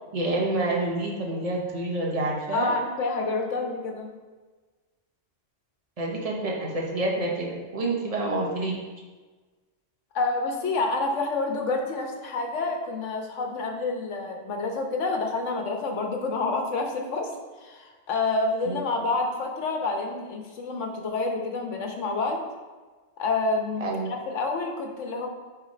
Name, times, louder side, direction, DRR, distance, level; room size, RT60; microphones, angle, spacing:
voice 1, 0.1-2.7 6.0-8.8 18.7-18.8 23.8-24.1, right 2 dB, 30° right, -2 dB, 1.1 m, -28 dB
voice 2, 2.5-4.1 10.1-22.4 23.2-25.3, left 3 dB, 90° left, 3 dB, 1.3 m, -28 dB
7.3 x 3.6 x 5.1 m, 1.3 s
omnidirectional pair, 1.2 m